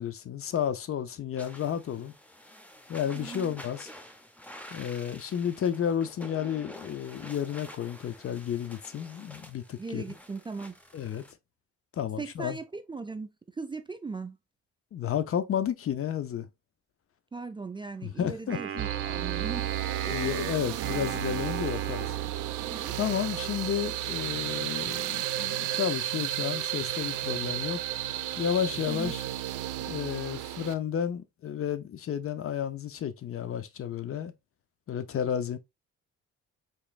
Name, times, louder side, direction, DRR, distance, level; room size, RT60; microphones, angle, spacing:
voice 1, 0.0-2.1 2.9-3.9 4.7-10.0 10.9-11.2 11.9-12.6 14.9-16.5 18.0-18.6 20.1-22.1 23.0-27.8 28.4-29.2 29.9-34.3 34.9-35.6, left 9 dB, 45° left, 0.6 m, -32 dB
sound 1, 1.4-11.3, equal, 5° left, 0.7 m, -49 dB
voice 2, 3.1-3.6 9.8-10.8 12.2-14.4 17.3-19.7 20.6-21.1 22.7-23.0 28.9-29.2, right 4 dB, 15° right, 0.4 m, -39 dB
Wind instrument woodwind instrument, 18.5-22.9, right 8 dB, 45° right, 0.7 m, -37 dB
sound 2, 18.8-30.7, right 13 dB, 85° right, 0.5 m, -33 dB
4.4 x 3.0 x 2.4 m
cardioid pair, 90°, 30 cm